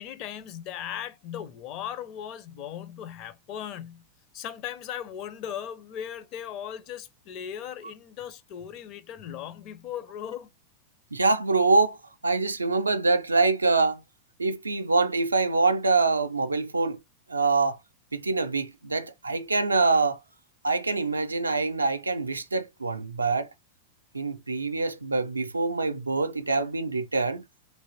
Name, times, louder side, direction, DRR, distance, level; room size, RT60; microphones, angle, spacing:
voice 1, 0.0-4.0 4.3-10.5, left 9 dB, 40° left, 0.5 m, -38 dB
voice 2, 11.1-12.0 12.2-14.0 14.4-17.0 17.3-17.8 18.1-20.2 20.6-23.5 24.1-27.4, right 3 dB, 80° right, 0.4 m, -25 dB
3.3 x 3.0 x 2.7 m
figure-of-eight pair, 90°, 0 cm